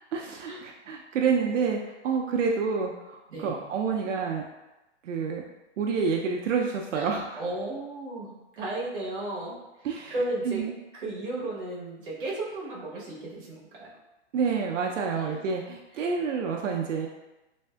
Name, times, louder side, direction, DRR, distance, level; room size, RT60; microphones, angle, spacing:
voice 1, 0.1-4.4 5.0-5.4 5.8-7.4 9.8-10.1 10.4-10.8 14.3-17.1, right 5 dB, 85° right, 1 dB, 0.5 m, -28 dB
voice 2, 3.3-3.6 6.9-10.6 10.9-13.9 15.2-15.4 16.0-16.1, right 2 dB, 45° right, -5 dB, 1.0 m, -35 dB
3.2 x 2.6 x 2.2 m, 0.98 s
hypercardioid pair, 180°, 36 cm